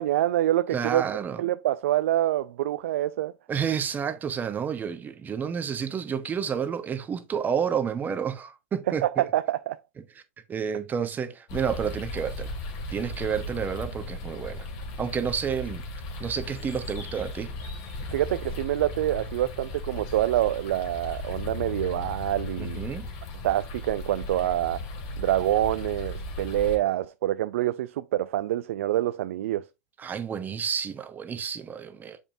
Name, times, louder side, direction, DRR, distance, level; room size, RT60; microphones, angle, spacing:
voice 1, 0.0-1.0 1.4-3.3 9.0-9.8 18.1-22.8 23.4-24.8 25.2-29.7, right 13 dB, 70° right, 0.4 m, -26 dB
voice 2, 0.7-1.4 3.5-9.2 10.5-12.5 12.9-14.7 15.0-15.8 16.2-17.5 22.6-23.1 30.0-32.2, right 7 dB, 25° right, 1.1 m, -30 dB
sound 1, 11.5-26.8, left 2 dB, 55° left, 2.4 m, -36 dB
7.0 x 5.4 x 2.6 m
hypercardioid pair, 100°, 7 cm